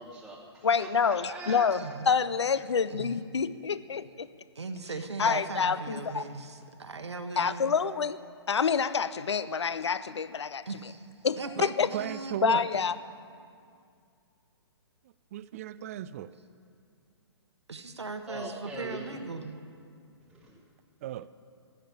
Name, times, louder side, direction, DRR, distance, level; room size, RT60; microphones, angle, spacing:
voice 1, 0.0-1.7 18.3-19.2 20.2-20.6, right 1 dB, ahead, -6 dB, 1.0 m, -42 dB
voice 2, 0.6-1.8 2.1-4.3 5.2-6.2 7.4-8.2 8.5-10.7 11.2-11.9 12.4-12.9, left 6 dB, 75° left, 16 dB, 0.4 m, -27 dB
voice 3, 1.7-2.0 2.9-3.1 4.5-7.6 10.6-11.1 11.4-12.6 17.7-19.5, right 4 dB, 75° right, 6 dB, 1.2 m, -38 dB
voice 4, 11.9-12.6 15.3-16.3 21.0-21.3, right 12 dB, 30° right, 16 dB, 0.4 m, -35 dB
15.5 x 6.7 x 9.7 m, 2.3 s
figure-of-eight pair, 125°, 14 cm